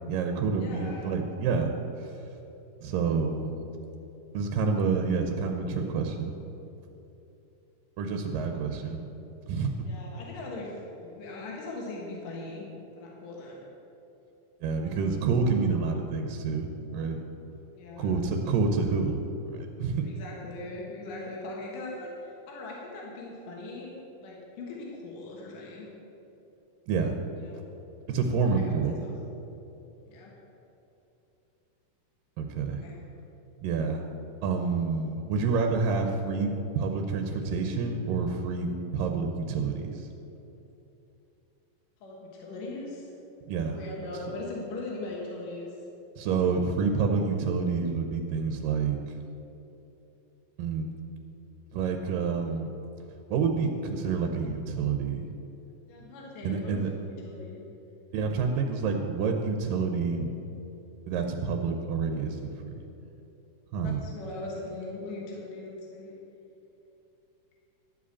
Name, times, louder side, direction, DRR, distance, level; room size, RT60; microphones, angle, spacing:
voice 1, 0.1-1.7 2.0-2.1 2.8-3.5 4.3-6.3 8.0-9.0 9.5-9.9 14.6-17.2 18.0-19.2 19.5-20.1 26.9-27.2 28.1-29.0 32.4-32.8 33.6-34.0 34.4-40.1 43.5-43.8 46.2-49.0 50.6-50.9 51.7-52.7 53.3-55.3 56.4-56.9 58.1-60.3 61.1-62.8 63.7-64.0, right 5 dB, 80° right, 4 dB, 2.4 m, -28 dB
voice 2, 0.6-1.1 9.8-12.7 12.9-13.7 17.7-18.2 20.0-25.9 27.4-27.6 28.4-29.1 30.1-30.3 32.7-33.0 42.0-43.1 43.7-45.7 55.9-57.6 63.8-66.2, left 2 dB, 75° left, -3 dB, 3.0 m, -40 dB
12.5 x 5.1 x 8.2 m, 3.0 s
omnidirectional pair, 3.9 m